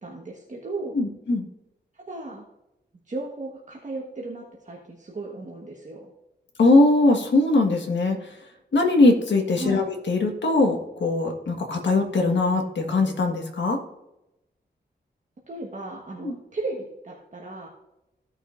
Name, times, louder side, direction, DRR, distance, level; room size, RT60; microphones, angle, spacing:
voice 1, 0.0-1.0 1.9-2.4 3.1-6.1 9.5-9.9 15.5-17.7, right 2 dB, 45° right, -2 dB, 1.4 m, -35 dB
voice 2, 0.9-1.5 6.6-8.3 8.7-13.8 16.2-16.3, left 2 dB, 85° left, 2 dB, 1.6 m, -21 dB
15.5 x 6.3 x 2.6 m, 0.89 s
wide cardioid pair, 105°, 18 cm